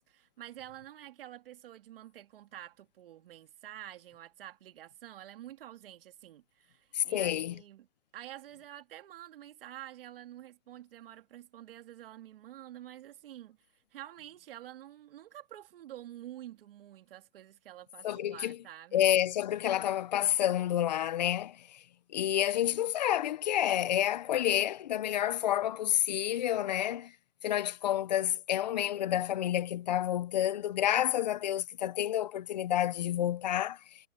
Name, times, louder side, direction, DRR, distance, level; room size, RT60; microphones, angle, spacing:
voice 1, 0.0-7.9 8.1-19.1, right 13 dB, 45° right, 2.8 m, -48 dB
voice 2, 6.9-7.5 18.0-18.6 18.9-21.8 22.1-27.1 27.4-33.8, left 11 dB, 35° left, 0.7 m, -29 dB
hypercardioid pair, 160°, 40 cm